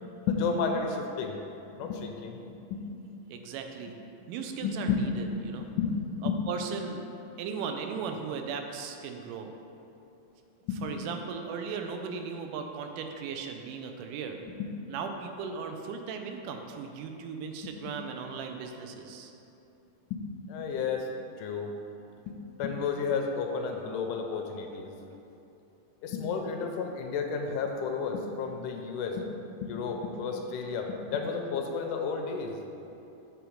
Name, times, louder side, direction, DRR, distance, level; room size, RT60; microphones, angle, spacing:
voice 1, 0.3-1.4 1.8-2.8 4.6-5.0 5.6-5.9 6.2-6.4 10.7-10.8 14.5-14.7 17.6-18.0 20.1-20.2 20.5-21.1 21.4-21.7 22.3-24.9 26.0-29.3 29.6-32.6, left 5 dB, 80° left, 3 dB, 2.0 m, -32 dB
voice 2, 3.3-4.0 4.3-5.7 6.2-7.1 7.4-9.5 10.8-14.4 14.9-19.3, right 6 dB, 85° right, 4 dB, 2.2 m, -37 dB
8.0 x 3.2 x 6.2 m, 2.8 s
omnidirectional pair, 3.7 m